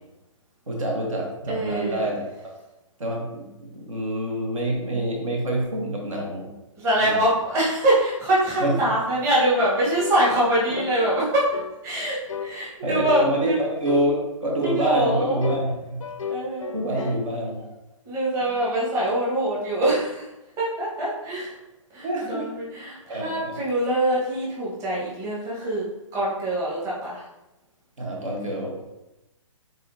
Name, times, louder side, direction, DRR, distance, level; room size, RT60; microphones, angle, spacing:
voice 1, 0.7-2.3 3.0-6.5 7.0-7.3 8.6-8.7 12.8-16.0 16.7-17.6 18.4-18.5 22.0-22.5 23.1-23.5 28.0-29.0, right 1 dB, 70° right, -1 dB, 1.3 m, -27 dB
voice 2, 1.5-2.1 6.8-11.5 11.8-13.6 14.6-15.4 16.3-16.7 18.0-20.3 20.6-21.5 21.9-25.8 26.1-27.2, right 1 dB, 15° right, -7 dB, 1.2 m, -24 dB
sound 1, 10.0-10.2 10.7-11.0 11.5-11.8 12.3-12.5 13.1-13.3 13.8-14.1 14.6-14.9 15.4-17.2, left 7 dB, 70° left, 0.4 m, -33 dB
4.1 x 3.9 x 2.7 m, 0.94 s
figure-of-eight pair, 130°, 18 cm